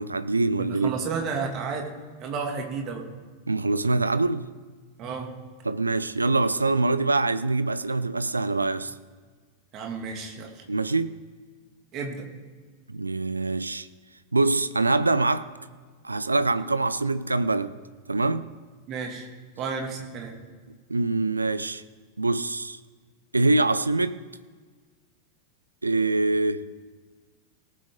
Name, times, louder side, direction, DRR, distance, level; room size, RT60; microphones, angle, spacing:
voice 1, 0.0-1.0 3.5-4.5 5.6-8.9 10.7-11.1 12.9-13.9 14.3-15.5 16.0-17.8 18.1-18.5 20.9-21.8 22.2-22.8 23.3-24.2 25.8-26.6, right 3 dB, 80° right, 0.5 m, -24 dB
voice 2, 0.6-1.9 2.2-3.1 5.0-5.3 9.7-10.6 11.9-12.3 18.9-19.3 19.6-20.3, right 5 dB, 35° right, 2.4 m, -32 dB
18.5 x 7.6 x 3.8 m
figure-of-eight pair, 90°, 0 cm